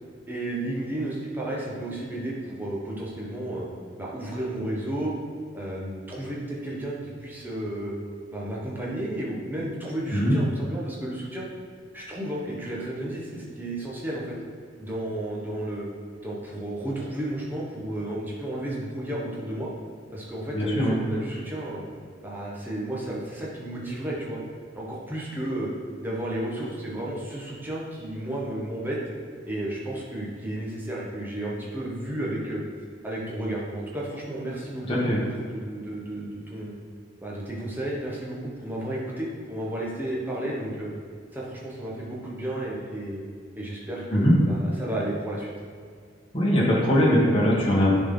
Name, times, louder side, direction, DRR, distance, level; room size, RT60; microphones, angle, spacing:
voice 1, 0.3-3.7 4.0-5.1 5.5-8.0 8.3-11.4 11.9-14.4 14.8-15.9 16.2-19.7 20.1-21.8 22.2-24.4 24.7-25.7 26.0-29.0 29.4-32.7 33.0-34.8 35.4-36.7 37.2-40.9 41.3-43.2 43.5-45.5, right 1 dB, 10° right, -5 dB, 1.2 m, -32 dB
voice 2, 20.5-20.9 34.8-35.2 44.1-44.3 46.3-47.9, equal, 25° left, -6 dB, 1.5 m, -21 dB
10.0 x 4.1 x 3.8 m, 2.1 s
head